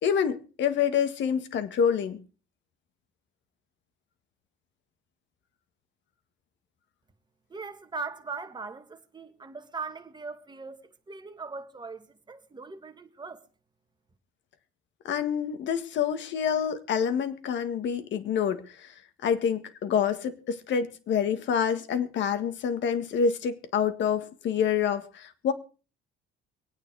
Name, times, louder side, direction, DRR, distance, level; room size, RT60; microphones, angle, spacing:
voice 1, 0.0-2.2 15.1-18.9 19.2-25.5, left 7 dB, 60° left, 1.8 m, -27 dB
voice 2, 7.5-10.8 11.1-13.4, right 4 dB, 20° right, 1.7 m, -40 dB
23.5 x 9.2 x 4.8 m
cardioid pair, 130°, 21 cm